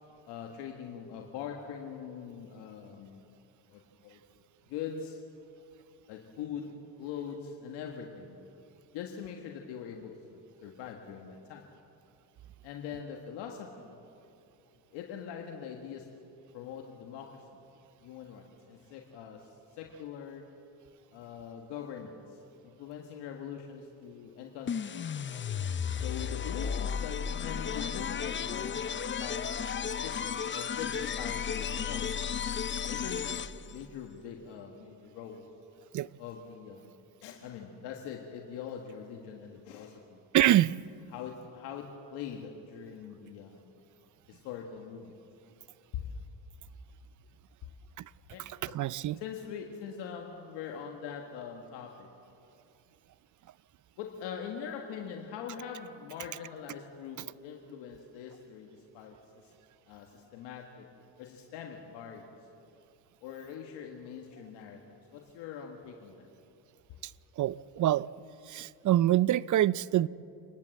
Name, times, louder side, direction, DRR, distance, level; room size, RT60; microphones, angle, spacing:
voice 1, 0.3-3.3 3.7-4.2 4.7-5.2 6.1-8.4 8.9-11.6 12.6-14.0 14.9-16.1 16.5-17.4 18.0-20.4 21.1-22.4 22.8-25.2 26.0-29.5 29.9-32.1 32.9-35.5 36.2-36.9 37.2-40.2 41.1-43.8 44.3-45.2 45.9-46.0 48.3-48.8 49.2-52.1 54.0-59.2 59.4-59.5 59.9-60.9 61.2-62.4 63.2-64.8 65.1-66.3, left 7 dB, 85° left, 1.6 m, -43 dB
sound 1, 24.7-33.8, left 7 dB, 30° left, 0.6 m, -34 dB
sound 2, 28.7-32.5, right 8 dB, 65° right, 2.0 m, -58 dB
voice 2, 40.3-40.7 48.6-49.2 67.4-68.1 68.5-70.1, right 13 dB, 50° right, 0.5 m, -25 dB
28.0 x 12.0 x 7.7 m
supercardioid pair, 80°, 40 cm